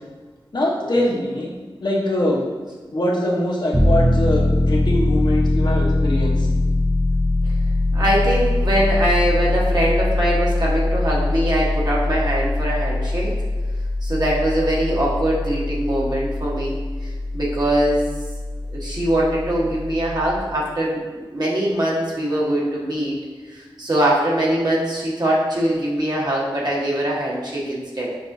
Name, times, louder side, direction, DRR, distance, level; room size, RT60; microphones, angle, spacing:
voice 1, 0.5-1.5 1.8-2.5 2.9-6.5, left 1 dB, 55° left, -3 dB, 0.8 m, -22 dB
Piano, 3.7-20.4, left 2 dB, 5° left, 0.6 m, -22 dB
voice 2, 7.9-13.3 14.0-18.2 18.7-21.0 21.3-23.2 23.5-28.1, right 1 dB, 50° right, -5 dB, 1.2 m, -22 dB
6.4 x 2.5 x 2.6 m, 1.4 s
wide cardioid pair, 60°, 9 cm